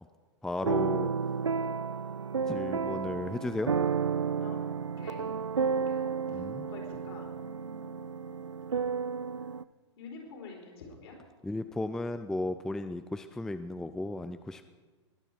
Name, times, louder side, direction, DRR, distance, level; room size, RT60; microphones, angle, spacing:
voice 1, 0.4-1.1 2.5-3.7 6.3-6.7 11.4-14.7, left 2 dB, 5° left, 10 dB, 0.4 m, -34 dB
sound 1, 0.6-9.6, right 6 dB, 90° right, 0.4 m, -32 dB
voice 2, 5.0-5.3 5.6-8.3 8.7-8.8 9.4-9.5 10.0-11.2, left 4 dB, 60° left, 0 dB, 4.1 m, -48 dB
21.0 x 8.9 x 4.5 m, 1.4 s
figure-of-eight pair, 100°, 15 cm